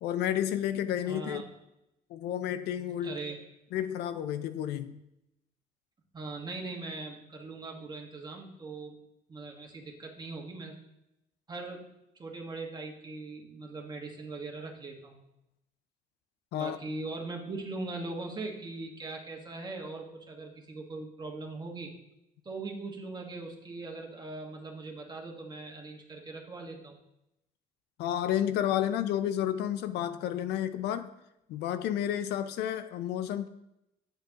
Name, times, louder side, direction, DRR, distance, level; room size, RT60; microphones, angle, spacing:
voice 1, 0.0-1.4 2.1-3.1 3.7-5.0 16.5-16.8 28.0-31.1 31.5-33.5, left 10 dB, 80° left, 0.5 m, -31 dB
voice 2, 1.0-1.5 3.0-3.4 6.1-9.0 9.3-10.8 11.5-11.9 12.1-15.2 16.5-21.9 22.4-27.0, right 3 dB, 25° right, 1.5 m, -40 dB
8.6 x 7.8 x 2.9 m
cardioid pair, 110°, 17 cm